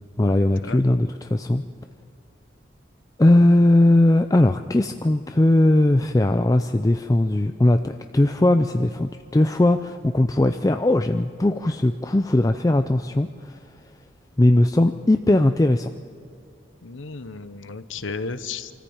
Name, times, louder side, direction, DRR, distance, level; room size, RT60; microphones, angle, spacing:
voice 1, 0.2-1.6 3.2-13.6 14.4-15.9, left 1 dB, 15° left, 8 dB, 0.4 m, -19 dB
voice 2, 16.8-18.7, left 4 dB, 75° left, 12 dB, 1.0 m, -33 dB
24.5 x 14.5 x 8.8 m, 2.4 s
head